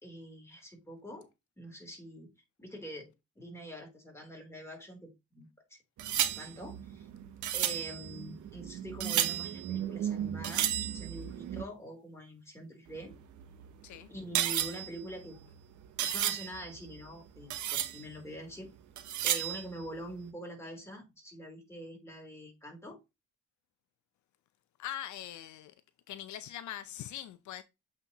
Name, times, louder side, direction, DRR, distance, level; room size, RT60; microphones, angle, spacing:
voice 1, 0.0-1.3 1.6-2.3 2.6-5.8 6.4-7.1 7.5-13.1 14.1-15.4 16.0-18.7 19.2-23.0, equal, 10° left, 3.3 m, -45 dB
sound 1, 6.0-11.6 12.9-17.1 17.4-18.2 19.0-19.9, right 11 dB, 75° right, 0.9 m, -34 dB
voice 2, 24.8-25.7 26.1-27.6, left 12 dB, 70° left, 0.6 m, -42 dB
7.8 x 4.3 x 2.9 m
cardioid pair, 90°, 30 cm